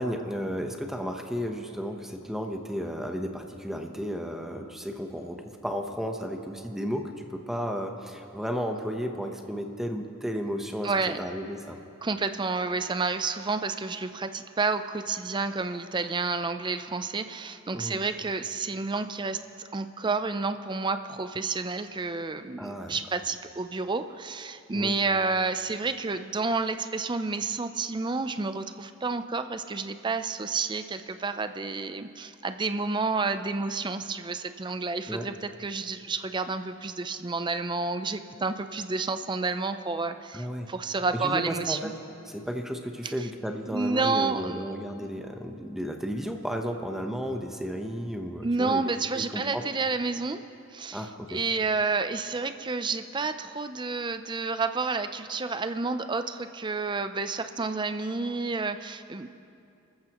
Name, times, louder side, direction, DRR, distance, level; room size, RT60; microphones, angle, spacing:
voice 1, 0.0-10.9 11.2-11.8 17.7-18.0 22.6-23.0 24.7-24.9 35.1-35.3 40.3-40.7 41.1-41.9 42.3-48.8 49.2-49.6 50.9-51.4, equal, ahead, 3 dB, 0.9 m, -33 dB
voice 2, 10.8-11.2 12.0-19.4 19.7-41.9 43.0-43.3 43.7-44.7 45.0-45.1 48.4-50.4 50.7-59.3, right 4 dB, 25° right, 10 dB, 0.5 m, -30 dB
29.5 x 14.0 x 3.0 m, 2.6 s
head